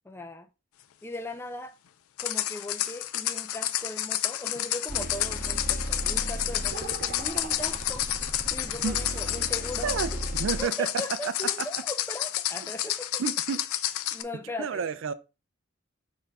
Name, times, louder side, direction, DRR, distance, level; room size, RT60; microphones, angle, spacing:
voice 1, 0.0-0.5 1.0-1.8 2.2-8.1 8.5-10.2 10.6-13.2 14.1-14.8, left 1 dB, 10° left, 0.4 m, -39 dB
sound 1, 2.2-14.2, left 13 dB, 85° left, 0.4 m, -30 dB
sound 2, 4.9-10.6, right 1 dB, 40° right, 1.4 m, -36 dB
voice 2, 9.8-10.9 11.2-11.3 13.2-13.6 14.6-15.1, right 6 dB, 65° right, 0.4 m, -30 dB
4.3 x 2.6 x 4.6 m
head